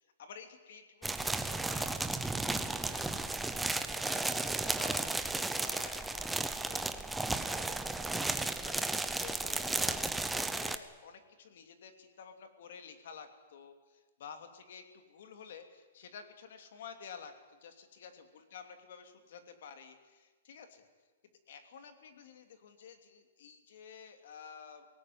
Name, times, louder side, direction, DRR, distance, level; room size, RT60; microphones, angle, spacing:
voice 1, 0.0-7.1 7.4-20.9 21.5-24.9, left 6 dB, 50° left, 7 dB, 2.9 m, -52 dB
sound 1, 1.0-10.8, right 2 dB, 5° right, 0.7 m, -34 dB
22.5 x 18.5 x 9.5 m, 1.3 s
hypercardioid pair, 175°, 0 cm